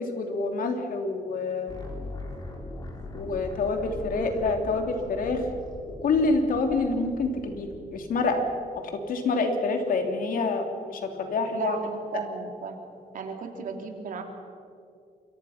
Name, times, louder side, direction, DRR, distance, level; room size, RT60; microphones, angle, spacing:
voice 1, 0.0-1.7 3.1-5.4 5.9-8.4 8.8-11.8, left 3 dB, 70° left, 5 dB, 3.0 m, -27 dB
sound 1, 1.7-8.5, left 2 dB, 25° left, 3.6 m, -41 dB
voice 2, 11.5-12.8 13.1-14.2, right 5 dB, 65° right, 4 dB, 3.1 m, -35 dB
28.5 x 23.5 x 5.8 m, 2.5 s
wide cardioid pair, 165°, 15 cm